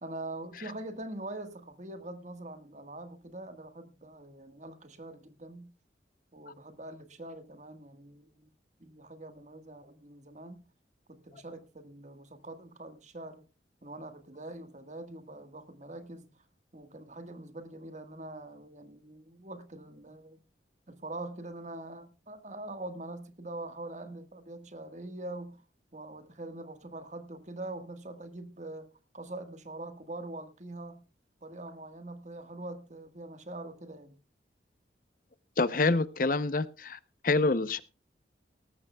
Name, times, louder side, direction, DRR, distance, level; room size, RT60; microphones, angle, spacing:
voice 1, 0.0-5.7 6.3-8.5 8.8-10.6 11.1-13.4 13.8-16.3 16.7-20.4 20.9-25.6 25.9-28.9 29.1-31.0 31.4-34.2, right 2 dB, 40° right, 1.6 m, -43 dB
voice 2, 35.6-37.0 37.2-37.8, left 3 dB, 50° left, 0.7 m, -26 dB
18.5 x 14.0 x 2.3 m
head